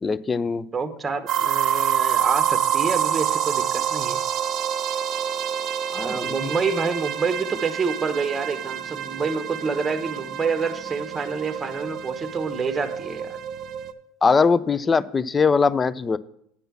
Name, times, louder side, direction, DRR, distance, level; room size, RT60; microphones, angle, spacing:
voice 1, 0.0-0.7 5.9-6.3 14.2-16.2, left 5 dB, 25° left, 18 dB, 0.4 m, -21 dB
voice 2, 0.7-4.2 6.0-13.4, right 4 dB, 20° right, 9 dB, 1.0 m, -27 dB
sound 1, 1.3-13.9, right 9 dB, 50° right, 0.6 m, -27 dB
8.4 x 5.4 x 7.1 m, 0.71 s
hypercardioid pair, 85°, 0 cm